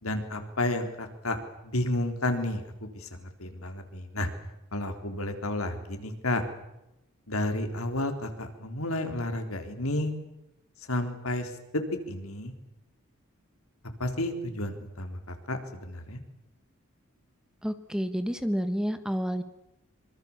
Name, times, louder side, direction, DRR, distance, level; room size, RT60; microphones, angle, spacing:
voice 1, 0.0-4.3 4.7-6.4 7.3-10.1 10.9-12.5 13.8-16.2, left 1 dB, 85° left, 6 dB, 3.9 m, -31 dB
voice 2, 17.6-19.4, equal, 5° right, 9 dB, 1.4 m, -29 dB
25.0 x 24.5 x 7.4 m, 0.91 s
head